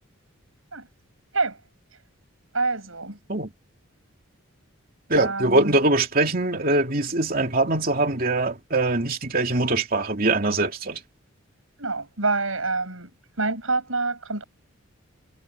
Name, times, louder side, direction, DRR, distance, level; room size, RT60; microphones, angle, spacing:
voice 1, 2.5-3.2 5.1-5.8 11.8-13.1 13.4-14.4, right 3 dB, 75° right, 6.7 m, -26 dB
voice 2, 5.1-11.0, right 2 dB, 45° right, 2.9 m, -22 dB
head